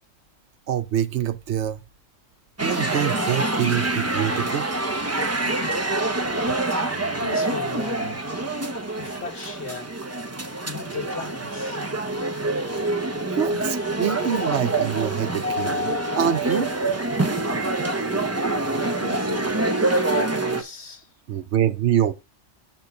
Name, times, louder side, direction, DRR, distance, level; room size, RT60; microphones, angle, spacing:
voice 1, 0.7-1.8 2.6-4.7 13.3-16.7 21.3-22.1, right 10 dB, 65° right, 0.9 m, -25 dB
sound 1, 2.6-20.6, right 2 dB, 15° right, 0.5 m, -26 dB
voice 2, 5.3-5.9 7.2-8.4 8.9-9.9 10.6-11.8 13.4-13.6 19.0-21.1, left 4 dB, 55° left, 1.6 m, -37 dB
6.5 x 4.4 x 5.8 m
omnidirectional pair, 1.3 m